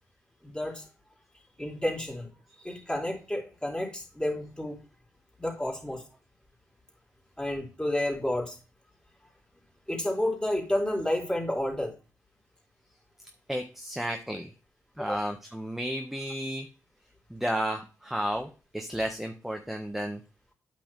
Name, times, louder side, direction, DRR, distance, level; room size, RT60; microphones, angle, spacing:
voice 1, 0.4-0.9 1.6-2.3 2.6-4.8 5.4-6.0 7.4-8.6 9.9-11.9 15.0-15.2, left 1 dB, 10° left, 0 dB, 3.6 m, -30 dB
voice 2, 13.5-14.5 15.0-16.7 17.3-20.2, equal, 5° right, 4 dB, 1.2 m, -32 dB
8.5 x 6.2 x 3.2 m, 0.33 s
supercardioid pair, 45°, 8 cm